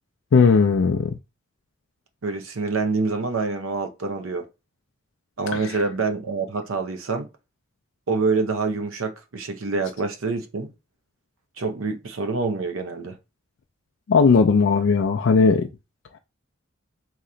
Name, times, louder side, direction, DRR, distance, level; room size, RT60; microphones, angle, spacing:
voice 1, 0.3-1.2 5.5-5.7 14.1-15.7, left 5 dB, 65° left, 0.4 m, -17 dB
voice 2, 2.2-4.5 5.4-7.3 8.1-10.7 11.6-13.2, right 4 dB, 80° right, 0.7 m, -26 dB
3.2 x 2.9 x 3.8 m
head